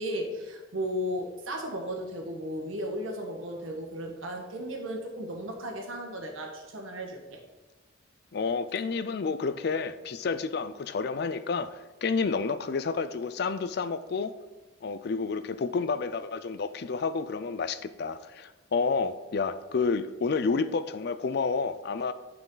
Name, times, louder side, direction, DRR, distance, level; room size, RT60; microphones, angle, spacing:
voice 1, 0.0-7.4, equal, 85° right, 1.4 m, -35 dB
voice 2, 8.3-14.3 14.8-22.1, left 4 dB, 55° left, 0.4 m, -30 dB
9.2 x 5.7 x 3.9 m
head